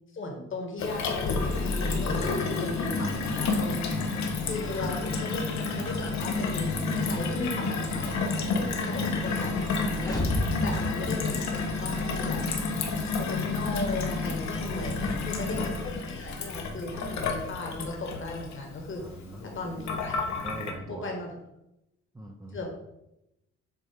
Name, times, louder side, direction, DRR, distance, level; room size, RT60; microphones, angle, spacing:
voice 1, 0.1-3.8 4.4-12.4 13.2-19.0 19.4-20.2 20.8-21.4 22.5-22.8, left 2 dB, 40° left, 2 dB, 1.5 m, -36 dB
Gurgling / Water tap faucet / Sink (filling or washing), 0.8-20.7, left 4 dB, 65° left, 1.0 m, -30 dB
sound 1, 1.6-9.2, right 7 dB, 50° right, 0.7 m, -44 dB
sound 2, 10.0-12.1, left 1 dB, 10° left, 1.1 m, -32 dB
voice 2, 14.8-15.2 19.0-19.6 20.4-21.0 22.1-22.6, right 1 dB, 10° right, -1 dB, 0.6 m, -40 dB
7.4 x 2.5 x 5.1 m, 0.87 s
cardioid pair, 90°, 30 cm